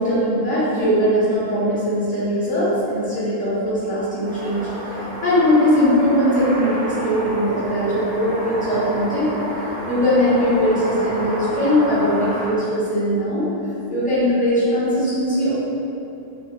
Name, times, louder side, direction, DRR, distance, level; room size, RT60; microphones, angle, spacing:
voice 1, 0.0-13.5 13.9-15.5, equal, 10° left, -12 dB, 0.8 m, -20 dB
sound 1, 4.2-12.5, equal, 55° right, 1.0 m, -30 dB
3.2 x 2.3 x 2.8 m, 2.8 s
omnidirectional pair, 1.2 m